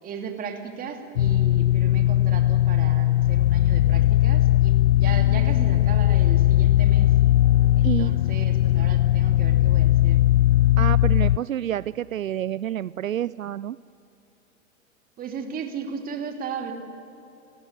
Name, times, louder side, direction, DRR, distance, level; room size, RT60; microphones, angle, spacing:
voice 1, 0.0-7.1 7.7-10.2 15.2-16.7, right 6 dB, 20° right, 4 dB, 2.7 m, -36 dB
sound 1, 1.2-11.4, left 14 dB, 60° left, 0.5 m, -19 dB
voice 2, 7.8-8.2 10.8-13.8, right 11 dB, 75° right, 19 dB, 0.5 m, -28 dB
29.5 x 14.5 x 9.6 m, 2.8 s
figure-of-eight pair, 105°, 41 cm